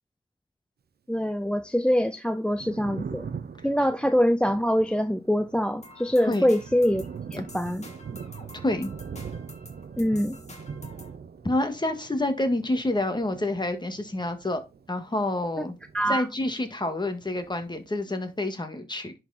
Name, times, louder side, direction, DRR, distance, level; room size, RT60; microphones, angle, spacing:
voice 1, 1.1-3.3 3.6-7.0 7.3-7.9 10.0-10.4 15.9-16.3, equal, 5° left, 0.5 m, -24 dB
Thunder, 2.4-16.8 17.1-18.3, right 6 dB, 75° right, 0.7 m, -42 dB
sound 1, 5.8-11.2, left 2 dB, 45° left, 2.2 m, -49 dB
voice 2, 11.4-14.6 14.9-15.8 16.1-19.1, left 2 dB, 25° left, 1.8 m, -28 dB
10.5 x 4.5 x 4.1 m
wide cardioid pair, 85°, 16 cm